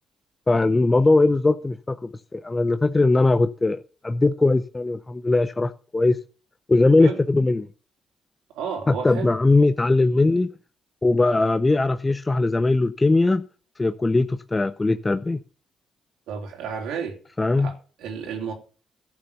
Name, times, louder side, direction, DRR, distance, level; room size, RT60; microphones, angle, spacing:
voice 1, 0.5-6.2 6.7-7.7 8.9-10.5 11.0-13.4 13.8-15.4 17.4-17.7, left 2 dB, 20° left, 0.6 m, -20 dB
voice 2, 8.5-9.3 16.3-17.2 17.6-18.5, right 6 dB, 90° right, 3.0 m, -32 dB
11.5 x 6.7 x 6.8 m
cardioid pair, 90°, 0 cm